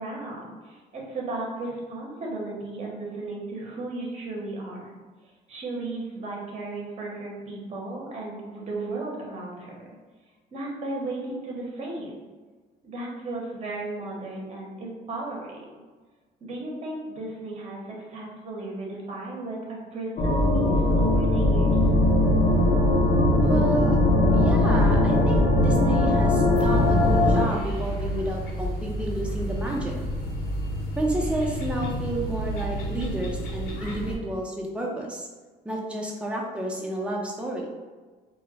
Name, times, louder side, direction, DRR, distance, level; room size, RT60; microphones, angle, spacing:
voice 1, 0.0-4.9 5.2-9.9 10.5-12.2 12.8-15.8 16.4-21.8, right 2 dB, 40° right, -2 dB, 0.8 m, -35 dB
sound 1, 20.2-27.4, left 1 dB, 45° left, 0.6 m, -20 dB
voice 2, 23.4-24.0 24.3-30.0 31.0-35.3 35.6-37.7, right 1 dB, 5° right, -2 dB, 0.6 m, -30 dB
sound 2, 26.5-34.2, right 1 dB, 75° left, 0.9 m, -31 dB
2.2 x 2.1 x 3.9 m, 1.4 s
cardioid pair, 110°, 17 cm